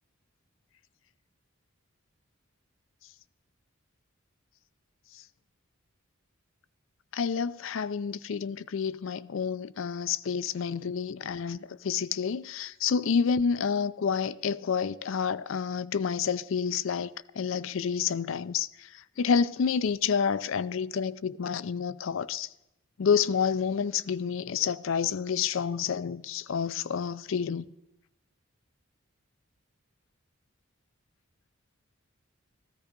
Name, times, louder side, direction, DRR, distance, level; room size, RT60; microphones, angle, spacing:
voice 1, 7.1-22.5 23.0-27.7, left 6 dB, 70° left, 0.4 m, -29 dB
13.5 x 13.5 x 5.2 m
head